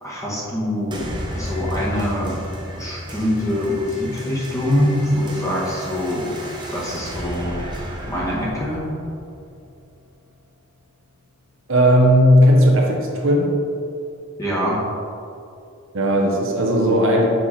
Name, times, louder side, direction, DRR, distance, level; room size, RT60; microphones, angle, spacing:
voice 1, 0.0-2.4 2.7-7.6 8.1-8.8 14.4-14.8, left 1 dB, 15° left, -6 dB, 1.7 m, -24 dB
sound 1, 0.9-9.9, equal, 20° right, 1.1 m, -33 dB
voice 2, 11.7-13.5 15.9-17.3, equal, 65° right, -1 dB, 1.1 m, -15 dB
7.0 x 5.8 x 4.3 m, 2.6 s
head